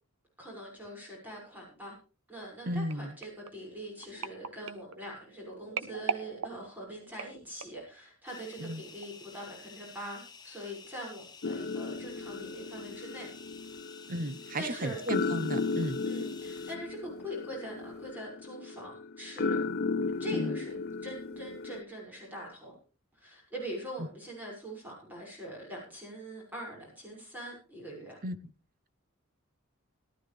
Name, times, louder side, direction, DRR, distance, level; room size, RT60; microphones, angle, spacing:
voice 1, 0.4-1.9 2.3-13.3 14.6-15.0 16.0-19.6 20.2-22.7 23.1-28.2, right 1 dB, 10° right, 6.2 m, -43 dB
voice 2, 2.7-3.1 8.6-8.8 14.1-16.0 20.3-20.5 28.2-28.4, equal, 45° right, 1.1 m, -34 dB
sound 1, 2.9-7.9 8.5-8.7 9.0-9.1, right 5 dB, 80° right, 1.1 m, -40 dB
sound 2, 8.3-16.8, left 5 dB, 20° left, 1.2 m, -51 dB
sound 3, 11.4-21.8, left 4 dB, 50° left, 0.6 m, -35 dB
18.0 x 12.5 x 3.4 m
head